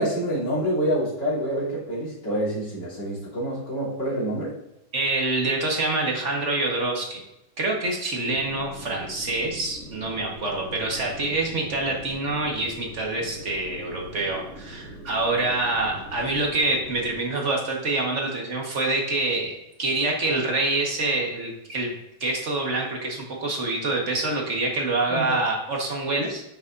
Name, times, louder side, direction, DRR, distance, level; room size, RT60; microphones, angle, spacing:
voice 1, 0.0-4.5 25.1-25.4, right 1 dB, 50° left, -6 dB, 3.9 m, -27 dB
voice 2, 4.9-7.2 7.6-21.9 22.2-26.4, right 2 dB, 35° right, 0 dB, 1.7 m, -26 dB
sound 1, 8.3-17.2, right 1 dB, 75° right, 3.2 m, -42 dB
10.5 x 6.8 x 2.7 m, 0.88 s
omnidirectional pair, 2.4 m